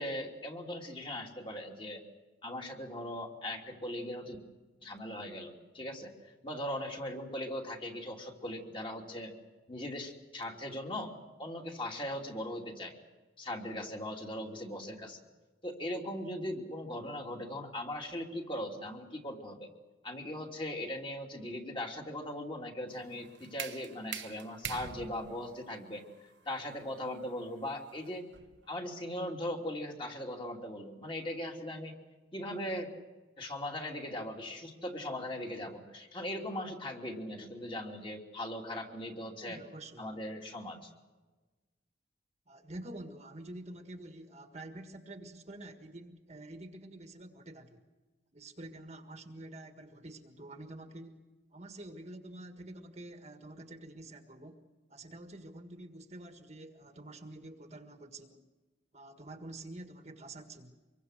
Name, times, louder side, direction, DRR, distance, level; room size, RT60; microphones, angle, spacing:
voice 1, 0.0-2.0 2.4-4.4 4.8-9.3 9.7-11.1 11.4-12.9 13.4-15.2 15.6-19.7 20.0-26.0 26.5-28.3 28.7-31.9 32.3-32.9 33.4-39.6 40.0-40.9, left 1 dB, 25° left, 1 dB, 2.8 m, -39 dB
sound 1, 22.9-28.7, right 8 dB, 65° right, 1.1 m, -45 dB
voice 2, 39.4-40.1 42.5-47.8 48.3-51.2 51.5-54.6 54.9-58.4 58.9-60.7, right 1 dB, 35° right, 6 dB, 1.7 m, -48 dB
25.5 x 23.0 x 6.5 m, 1.2 s
head